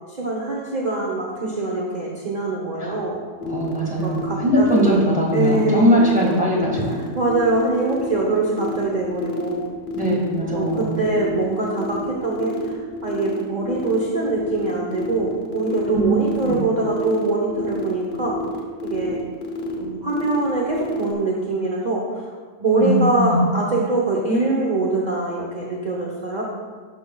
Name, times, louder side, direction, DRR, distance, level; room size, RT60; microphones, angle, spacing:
voice 1, 0.1-3.2 3.9-6.3 6.9-9.7 10.5-18.4 18.8-19.2 19.7-22.2 22.6-26.4, right 2 dB, 35° right, -3 dB, 0.8 m, -23 dB
sound 1, 3.4-21.1, left 4 dB, 45° left, 1.0 m, -30 dB
voice 2, 3.4-6.9 9.9-11.1 15.9-16.6 22.8-23.4, equal, 5° right, -4 dB, 1.5 m, -20 dB
12.0 x 6.1 x 2.3 m, 1.5 s
omnidirectional pair, 1.8 m